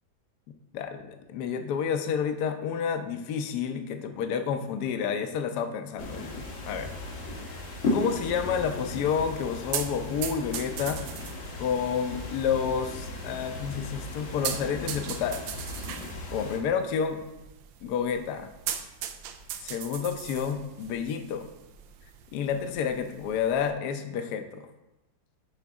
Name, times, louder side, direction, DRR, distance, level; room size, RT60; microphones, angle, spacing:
voice 1, 0.7-6.4 6.7-7.0 7.9-11.0 11.6-15.4 16.3-17.2 17.8-18.5 19.6-21.5 22.3-24.7, left 7 dB, 70° left, 7 dB, 1.1 m, -29 dB
sound 1, 6.0-16.6, left 2 dB, 90° left, 2.2 m, -36 dB
sound 2, 6.2-23.7, right 9 dB, 90° right, 1.3 m, -41 dB
11.5 x 3.9 x 3.5 m, 0.97 s
omnidirectional pair, 2.0 m